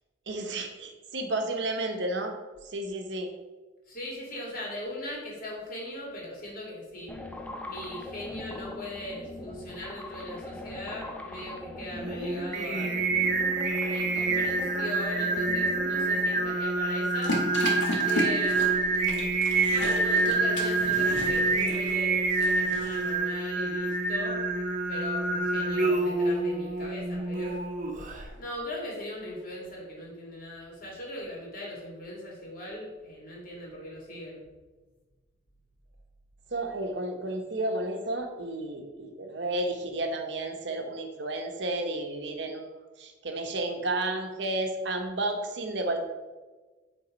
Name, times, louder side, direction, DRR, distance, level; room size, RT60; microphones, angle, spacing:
voice 1, 0.3-2.3 2.6-3.3 36.5-42.7 43.0-46.0, right 2 dB, 70° right, 4 dB, 1.0 m, -32 dB
voice 2, 3.9-7.2 7.6-13.0 13.8-17.4 18.0-19.4 19.7-24.4 24.9-27.6 28.4-34.4, left 1 dB, 50° left, -3 dB, 2.5 m, -39 dB
sound 1, 7.1-16.6, left 1 dB, 10° left, 0.6 m, -41 dB
Singing, 12.0-28.3, right 3 dB, 45° right, 1.1 m, -27 dB
sound 2, 17.2-23.1, left 2 dB, 90° left, 1.9 m, -34 dB
8.4 x 3.8 x 5.1 m, 1.3 s
head